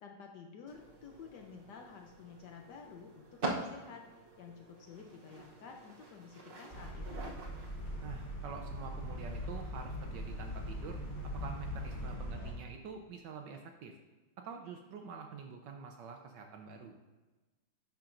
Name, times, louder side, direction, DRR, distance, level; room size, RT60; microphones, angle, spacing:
voice 1, 0.0-7.3, left 6 dB, 70° left, 2 dB, 1.1 m, -52 dB
sound 1, 0.7-12.1, right 2 dB, 45° right, 0.7 m, -47 dB
sound 2, 6.7-12.5, equal, 40° left, 2.8 m, -41 dB
voice 2, 8.0-11.0 11.3-14.0 14.4-16.9, right 6 dB, 70° right, 4 dB, 1.1 m, -46 dB
10.5 x 5.8 x 2.6 m, 1.2 s
omnidirectional pair, 2.3 m